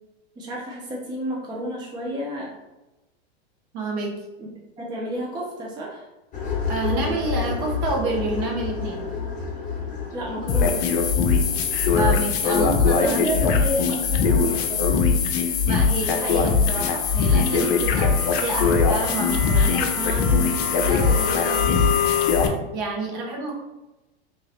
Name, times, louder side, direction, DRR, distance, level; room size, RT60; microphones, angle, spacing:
voice 1, 0.4-2.5 4.4-4.5 4.8-6.1 10.1-10.9 12.4-15.1, equal, 15° right, -3 dB, 0.6 m, -31 dB
voice 2, 3.7-4.1 6.7-9.1 11.9-13.2 15.7-21.9 22.7-23.6, right 2 dB, 45° right, 0 dB, 1.2 m, -29 dB
sound 1, 6.3-12.2, left 5 dB, 25° left, 1.2 m, -30 dB
sound 2, 10.5-22.5, left 5 dB, 55° left, 0.7 m, -20 dB
3.0 x 2.8 x 4.1 m, 1.0 s
hypercardioid pair, 115°, 31 cm